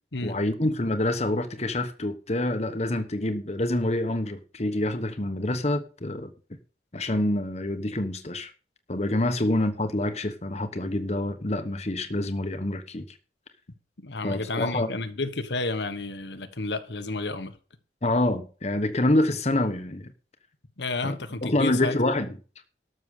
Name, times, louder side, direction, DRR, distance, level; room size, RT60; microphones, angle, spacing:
voice 1, 0.2-6.3 6.9-8.5 8.9-13.0 14.2-15.0 18.0-20.1 21.0-21.2 21.4-22.3, left 1 dB, 40° left, 1.2 m, -26 dB
voice 2, 14.0-17.5 20.8-22.0, left 3 dB, 80° left, 1.4 m, -31 dB
12.5 x 6.8 x 6.6 m
head